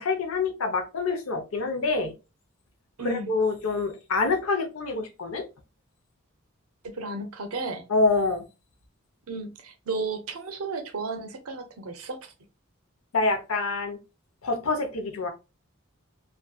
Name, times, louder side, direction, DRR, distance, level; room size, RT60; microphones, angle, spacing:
voice 1, 0.0-2.1 3.0-5.5 7.9-8.4 13.1-14.0 14.4-15.3, left 3 dB, 80° left, 0.6 m, -26 dB
voice 2, 3.0-3.3 6.8-7.8 9.3-12.3, right 3 dB, 90° right, 0.6 m, -34 dB
2.6 x 2.4 x 2.2 m
head